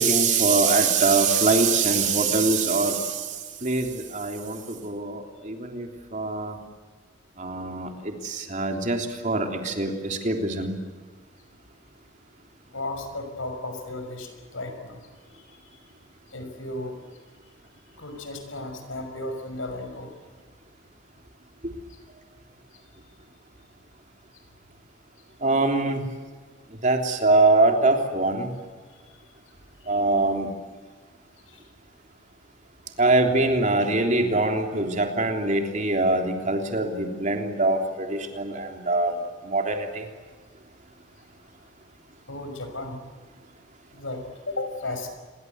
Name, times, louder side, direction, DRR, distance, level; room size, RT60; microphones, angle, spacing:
voice 1, 0.0-3.1 3.6-3.9 4.1-5.9 6.1-6.5 7.4-10.7 25.4-26.0 26.8-28.5 29.9-30.5 33.0-39.1 39.5-40.0, right 3 dB, 40° right, 3 dB, 3.4 m, -23 dB
voice 2, 12.7-15.0 16.3-17.0 18.0-20.1 31.5-31.6 42.3-43.0 43.9-45.1, left 2 dB, 80° left, 7 dB, 5.9 m, -34 dB
29.0 x 22.5 x 8.1 m, 1.5 s
head